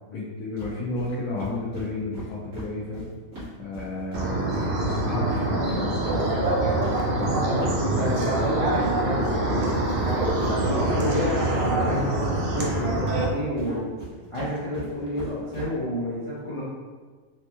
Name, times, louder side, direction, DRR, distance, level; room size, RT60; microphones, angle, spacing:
voice 1, 0.1-3.1 3.6-6.0 7.1-7.4, left 2 dB, 75° left, -6 dB, 1.0 m, -32 dB
sound 1, 0.6-0.7 1.0-1.1 1.4-4.3 4.5-12.9 13.2-15.7, right 1 dB, 90° right, 2.0 m, -38 dB
sound 2, 4.1-13.2, right 2 dB, 65° right, 0.5 m, -25 dB
voice 2, 7.0-10.3 10.6-13.9 14.3-16.7, equal, 50° left, -8 dB, 0.3 m, -30 dB
4.2 x 2.1 x 2.9 m, 1.4 s
omnidirectional pair, 1.5 m